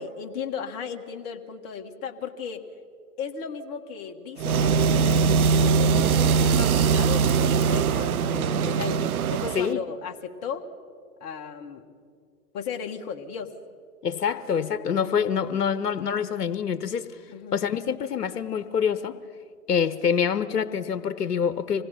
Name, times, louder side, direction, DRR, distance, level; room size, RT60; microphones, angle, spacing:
voice 1, 0.0-2.7 3.2-10.7 11.2-11.9 12.5-13.5 17.3-17.6, left 6 dB, 30° left, 4 dB, 1.6 m, -36 dB
sound 1, 4.4-9.7, right 5 dB, 65° right, 0.9 m, -21 dB
voice 2, 14.0-17.2 17.5-19.2 19.7-21.8, left 7 dB, 80° left, 12 dB, 1.0 m, -26 dB
25.5 x 19.0 x 5.7 m, 2.3 s
hypercardioid pair, 115°, 47 cm